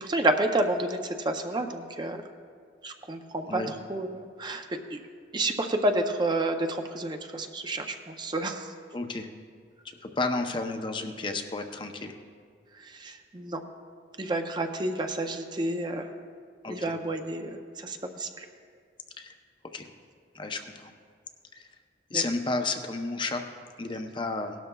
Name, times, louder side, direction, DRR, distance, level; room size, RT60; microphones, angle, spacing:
voice 1, 0.0-2.2 2.8-4.1 4.4-4.7 4.9-5.0 5.3-8.7 12.7-13.6 14.2-16.1 16.7-18.5 22.1-22.2, right 1 dB, 25° right, 5 dB, 0.5 m, -30 dB
voice 2, 8.9-9.3 10.0-12.1 16.6-16.8 19.2-19.3 19.7-19.9 20.3-20.9 21.5-21.7 22.1-23.4 23.8-24.6, left 3 dB, 25° left, 5 dB, 0.6 m, -32 dB
17.5 x 12.0 x 2.3 m, 2.1 s
head